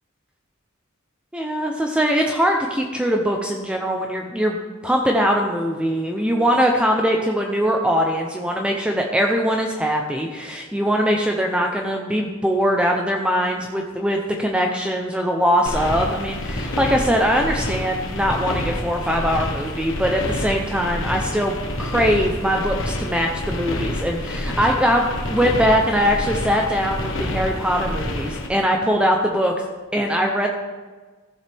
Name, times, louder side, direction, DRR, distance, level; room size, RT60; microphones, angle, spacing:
voice 1, 1.3-4.6 4.8-29.5 29.9-30.5, equal, 5° right, 1 dB, 0.7 m, -21 dB
sound 1, 15.7-28.5, left 1 dB, 65° left, 1.3 m, -28 dB
15.0 x 7.2 x 3.5 m, 1.3 s
head